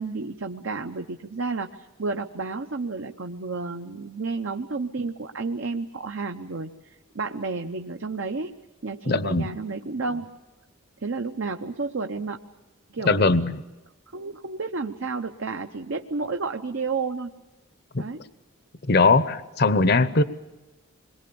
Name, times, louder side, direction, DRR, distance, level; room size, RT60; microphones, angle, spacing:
voice 1, 0.0-8.5 8.8-10.3 11.0-12.4 12.9-13.3 14.1-17.3 18.0-18.2, right 4 dB, 65° right, 5 dB, 0.8 m, -31 dB
voice 2, 9.1-9.5 13.0-13.6 17.9-18.1 18.9-20.2, left 3 dB, 50° left, 13 dB, 0.8 m, -20 dB
28.0 x 22.5 x 7.0 m, 1.1 s
head